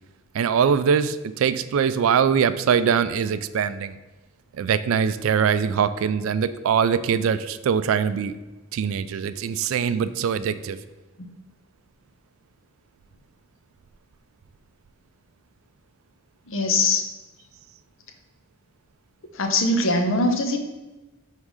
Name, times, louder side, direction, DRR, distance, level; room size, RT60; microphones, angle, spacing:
voice 1, 0.3-4.0 4.6-8.3 8.7-10.8, right 7 dB, 65° right, 13 dB, 0.3 m, -22 dB
voice 2, 16.5-17.1 19.3-20.6, left 2 dB, 65° left, 5 dB, 0.7 m, -22 dB
4.8 x 3.7 x 5.4 m, 1.1 s
head